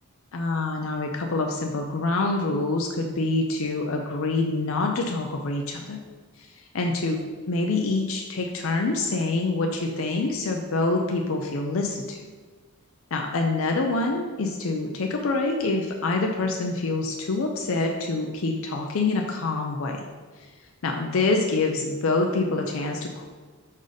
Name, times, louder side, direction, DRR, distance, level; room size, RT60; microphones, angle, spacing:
voice 1, 0.3-6.0 6.4-6.5 6.7-7.2 7.5-12.2 13.1-20.0 20.8-23.2, left 3 dB, 65° left, 2 dB, 0.5 m, -26 dB
5.3 x 4.0 x 4.9 m, 1.4 s
head